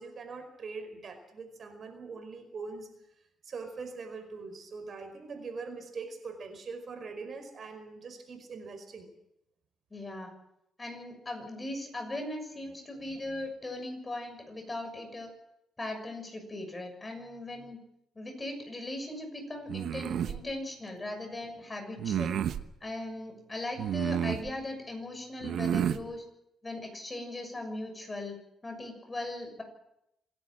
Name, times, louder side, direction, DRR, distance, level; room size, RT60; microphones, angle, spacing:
voice 1, 0.0-2.9 3.4-9.1, right 4 dB, 50° right, 7 dB, 5.0 m, -42 dB
voice 2, 9.9-10.3 10.8-15.3 15.8-17.8 18.1-22.4 22.8-26.2 26.6-28.4 28.6-29.6, left 1 dB, 20° left, 5 dB, 6.6 m, -39 dB
sound 1, 19.7-20.4 22.0-22.6 23.8-24.5 25.4-26.0, right 9 dB, 75° right, 1.1 m, -30 dB
26.5 x 11.0 x 9.0 m, 0.81 s
cardioid pair, 90°, 0 cm